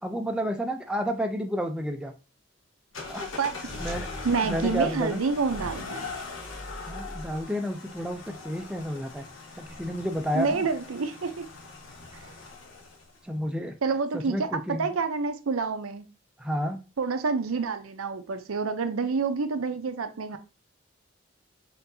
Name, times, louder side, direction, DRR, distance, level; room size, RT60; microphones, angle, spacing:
voice 1, 0.0-2.1 3.1-3.2 3.8-4.1 4.4-5.2 6.9-9.2 9.6-10.7 13.2-13.8 14.1-14.9 16.4-16.8, equal, 5° right, 0.4 m, -31 dB
sound 1, 2.9-13.2, left 3 dB, 75° left, 1.1 m, -40 dB
voice 2, 3.4-3.7 4.2-6.1 10.3-11.5 13.8-16.1 17.0-20.4, right 4 dB, 90° right, 0.6 m, -28 dB
4.4 x 3.9 x 2.7 m
head